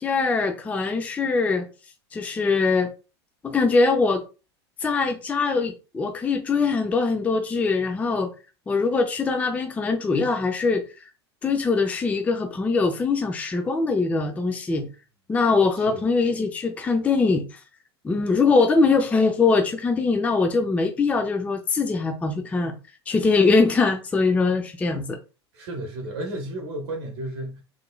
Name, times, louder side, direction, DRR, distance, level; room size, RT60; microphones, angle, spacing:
voice 1, 0.0-1.7 2.1-2.9 3.4-4.2 4.8-8.3 8.7-10.8 11.4-14.9 15.3-17.6 18.0-22.7 23.1-25.2, left 4 dB, 10° left, 0.4 m, -22 dB
voice 2, 25.5-27.6, right 1 dB, 50° right, 0.9 m, -33 dB
3.7 x 3.1 x 2.3 m
figure-of-eight pair, 85°, 14 cm